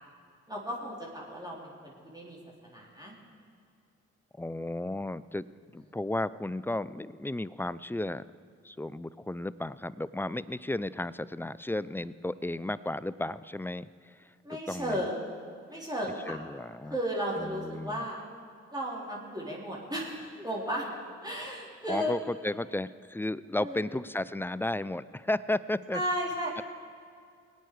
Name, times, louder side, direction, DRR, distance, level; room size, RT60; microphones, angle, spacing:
voice 1, 0.5-2.4 2.6-3.1 14.4-15.3 15.7-16.4 16.9-18.2 18.7-20.9 21.2-22.1 23.6-23.9 25.9-26.5, equal, 10° right, -4 dB, 4.1 m, -34 dB
voice 2, 4.4-5.5 5.7-8.2 8.6-15.0 16.3-17.0 17.4-18.1 21.9-26.0 26.6-26.7, left 1 dB, 5° left, 18 dB, 0.4 m, -34 dB
20.0 x 9.3 x 4.9 m, 2.2 s
supercardioid pair, 45°, 32 cm